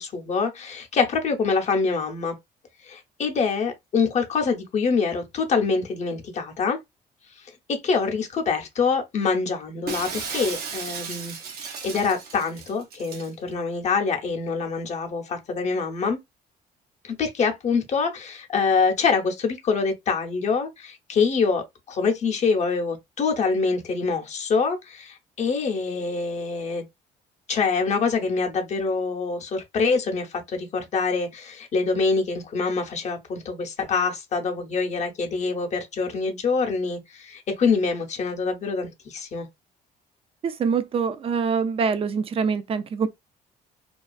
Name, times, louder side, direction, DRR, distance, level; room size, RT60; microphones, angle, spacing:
voice 1, 0.0-2.4 2.8-6.8 7.4-11.4 11.6-16.2 17.0-26.9 27.5-39.5, left 4 dB, 45° left, 0.6 m, -25 dB
Shatter, 9.9-13.3, right 5 dB, 70° right, 0.7 m, -35 dB
voice 2, 40.4-43.1, right 6 dB, 35° right, 0.4 m, -24 dB
2.4 x 2.3 x 2.3 m
cardioid pair, 110°, 17 cm